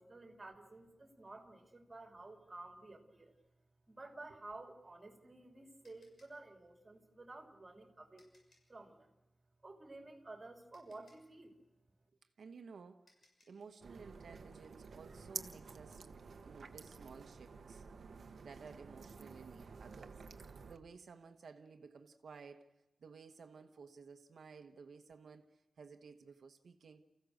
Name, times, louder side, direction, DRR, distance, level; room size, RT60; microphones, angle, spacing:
voice 1, 0.0-3.3 3.9-8.3 8.7-9.2 9.6-11.6, right 2 dB, 25° right, 3.0 m, -53 dB
sound 1, 5.8-8.8 10.2-10.3 10.7-13.7, left 2 dB, 65° left, 6.5 m, -73 dB
voice 2, 12.4-13.1 13.5-17.8 18.4-27.0, right 5 dB, 90° right, 1.1 m, -55 dB
sound 2, 13.8-20.8, right 5 dB, 70° right, 1.1 m, -51 dB
29.5 x 15.5 x 6.5 m
wide cardioid pair, 160°, 0 cm